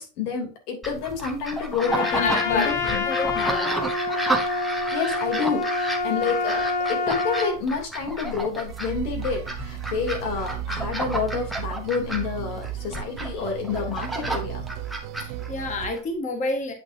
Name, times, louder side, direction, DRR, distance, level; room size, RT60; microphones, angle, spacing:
voice 1, 0.0-3.1 4.9-14.6, left 6 dB, 80° left, 2 dB, 3.4 m, -29 dB
sound 1, 0.8-16.0, right 1 dB, ahead, 0.8 m, -31 dB
Trumpet, 1.8-7.6, left 4 dB, 40° left, 1.6 m, -27 dB
voice 2, 2.1-3.8 6.1-6.3 15.2-16.7, left 2 dB, 15° left, 4 dB, 1.3 m, -29 dB
sound 2, 8.7-15.9, right 12 dB, 75° right, 1.0 m, -35 dB
8.5 x 6.0 x 2.8 m, 0.33 s
supercardioid pair, 155°, 45 cm